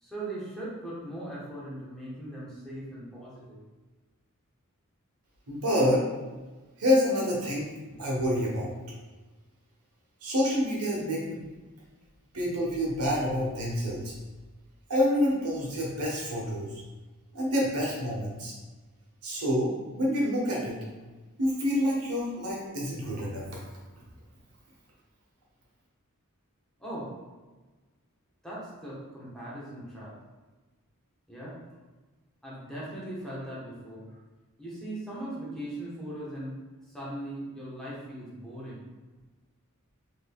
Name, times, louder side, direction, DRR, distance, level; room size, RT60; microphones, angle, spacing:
voice 1, 0.0-3.6 26.8-27.1 28.4-30.1 31.3-31.6 32.4-34.2 34.6-36.6 36.9-38.8, right 1 dB, ahead, -8 dB, 1.0 m, -39 dB
voice 2, 5.5-6.0 6.8-7.7 8.0-8.7 10.2-11.4 12.3-14.1 14.9-16.7 17.3-18.5 19.2-20.8 21.4-23.4, equal, 80° right, -3 dB, 1.0 m, -27 dB
3.8 x 3.3 x 2.2 m, 1.2 s
head